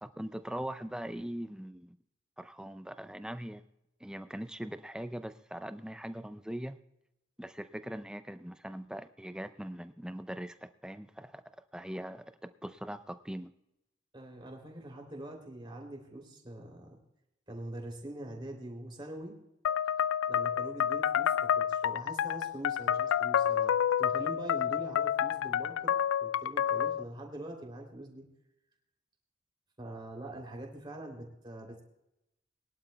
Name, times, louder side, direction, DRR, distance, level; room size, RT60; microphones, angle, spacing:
voice 1, 0.0-2.0 2.4-3.6 4.0-6.8 7.4-11.4 11.7-13.5, right 1 dB, 5° right, 11 dB, 0.5 m, -41 dB
voice 2, 14.1-17.0 17.5-19.4 20.3-28.3 29.8-31.8, right 1 dB, 25° right, 2 dB, 3.0 m, -44 dB
sound 1, 19.6-27.0, left 9 dB, 75° left, 0.3 m, -29 dB
22.0 x 11.5 x 2.3 m, 0.87 s
head